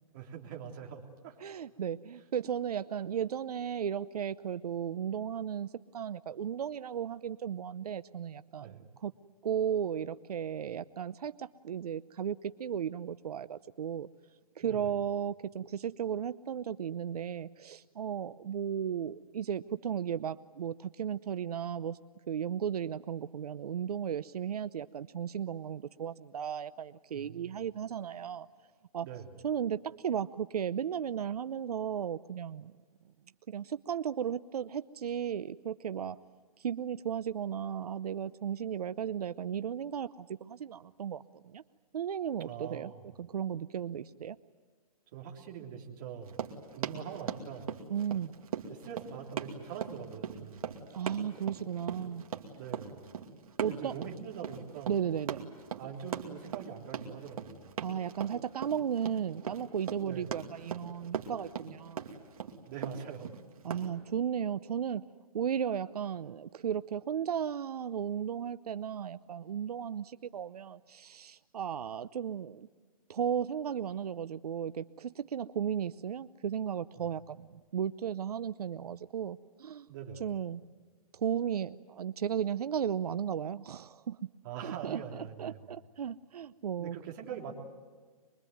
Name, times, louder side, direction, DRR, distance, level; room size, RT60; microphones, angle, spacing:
voice 1, 0.1-1.4 8.6-8.9 14.6-14.9 27.1-27.6 29.0-29.3 42.4-43.0 45.1-46.4 46.7-47.7 48.7-50.6 52.5-53.0 53.6-54.9 55.8-57.6 60.0-60.3 62.6-63.3 79.9-80.2 84.4-85.6 86.8-87.5, right 8 dB, 35° right, 0 dB, 3.4 m, -43 dB
voice 2, 1.4-9.1 9.4-14.1 14.6-22.0 22.3-28.5 28.9-29.1 29.4-32.7 33.5-36.2 36.6-41.6 41.9-42.9 43.2-44.4 47.9-48.3 50.9-52.2 53.6-53.9 54.9-55.5 57.8-62.1 63.6-65.1 65.3-72.7 73.1-79.9 80.2-80.6 81.1-84.3 84.6-87.0, right 8 dB, 90° right, 14 dB, 0.7 m, -35 dB
Run, 46.2-63.9, right 7 dB, 65° right, 2.5 m, -39 dB
24.0 x 23.0 x 9.4 m, 1.5 s
hypercardioid pair, 170°, 19 cm